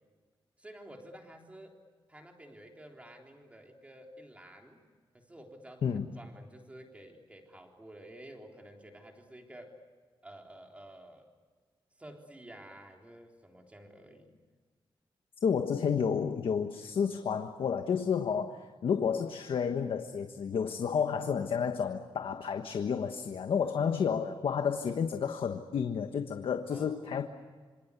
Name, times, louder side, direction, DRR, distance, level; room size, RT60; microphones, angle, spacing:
voice 1, 0.6-1.8 2.1-4.8 5.1-5.8 6.2-9.8 10.2-11.3 12.0-14.4 24.0-24.1 26.7-27.2, right 1 dB, 15° right, 2 dB, 3.6 m, -51 dB
voice 2, 15.4-27.3, left 7 dB, 90° left, 6 dB, 1.3 m, -31 dB
26.5 x 26.5 x 8.3 m, 1.5 s
wide cardioid pair, 175°, 9 cm